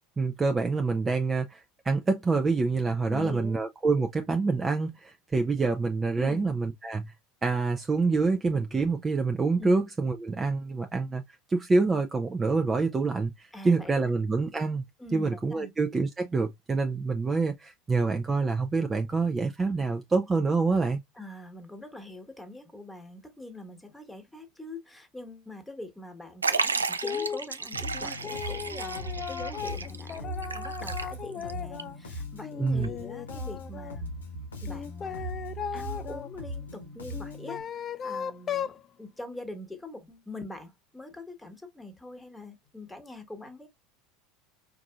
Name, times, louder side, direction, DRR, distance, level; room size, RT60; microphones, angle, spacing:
voice 1, 0.2-7.1 7.4-11.2 11.5-14.8 15.1-21.0 32.6-32.9, right 4 dB, 20° right, 0.5 m, -26 dB
voice 2, 3.1-3.6 6.2-6.4 9.6-9.8 13.5-13.9 15.0-15.7 21.2-34.1 34.6-35.3 35.7-38.7 39.0-43.7, left 2 dB, 5° left, 1.3 m, -43 dB
Liquid, 26.4-31.5 31.8-31.9 32.8-32.9, right 4 dB, 85° right, 0.3 m, -33 dB
sound 1, 27.0-27.4 27.9-32.0 32.4-34.0 34.6-36.3 37.1-38.8, left 8 dB, 35° left, 0.4 m, -37 dB
Bass guitar, 27.7-37.6, equal, 80° left, 1.0 m, -39 dB
4.7 x 2.6 x 2.3 m
figure-of-eight pair, 75°, 0 cm